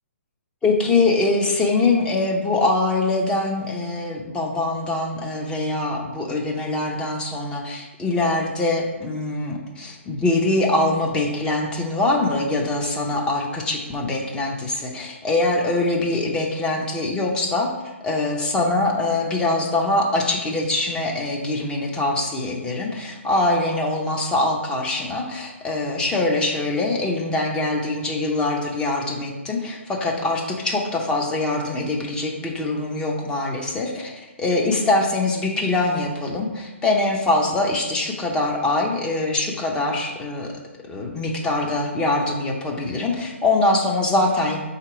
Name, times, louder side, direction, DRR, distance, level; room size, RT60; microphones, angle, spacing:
voice 1, 0.6-17.7 18.0-40.5 40.9-44.6, left 2 dB, 10° left, 0 dB, 0.5 m, -23 dB
3.8 x 2.9 x 4.8 m, 1.1 s
figure-of-eight pair, 130°, 7 cm